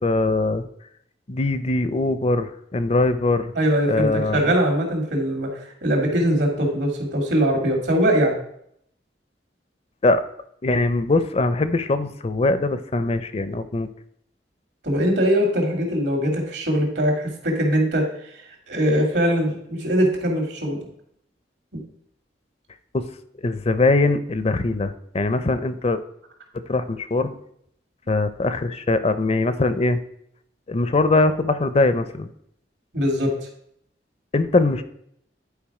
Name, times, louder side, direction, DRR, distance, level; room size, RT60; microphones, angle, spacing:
voice 1, 0.0-0.6 1.3-3.5 3.9-4.5 10.0-10.2 10.6-13.9 22.9-23.1 23.4-26.0 26.7-27.3 28.1-30.0 30.7-32.3 34.3-34.8, left 2 dB, 35° left, 12 dB, 0.6 m, -21 dB
voice 2, 3.5-8.4 14.8-18.0 18.7-20.8 21.7-21.8 32.9-33.3, equal, 75° right, 2 dB, 2.5 m, -21 dB
10.5 x 4.7 x 4.8 m, 0.70 s
head